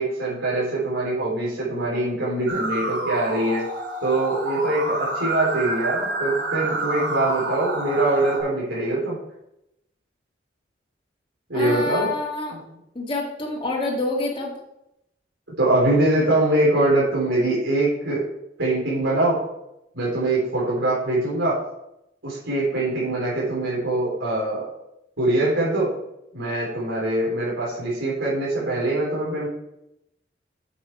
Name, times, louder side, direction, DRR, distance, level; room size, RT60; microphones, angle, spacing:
voice 1, 0.0-3.7 4.0-9.2 11.5-12.1 12.5-12.6 15.6-18.2 18.6-19.4 19.9-21.6 22.2-24.6 25.2-25.9 26.3-29.5, right 2 dB, 90° right, -7 dB, 3.9 m, -23 dB
sound 1, 2.5-8.4, right 2 dB, 70° right, 2.6 m, -28 dB
voice 2, 11.5-12.5 12.9-14.5, left 2 dB, 25° left, -2 dB, 1.8 m, -27 dB
8.9 x 7.2 x 4.7 m, 0.84 s
head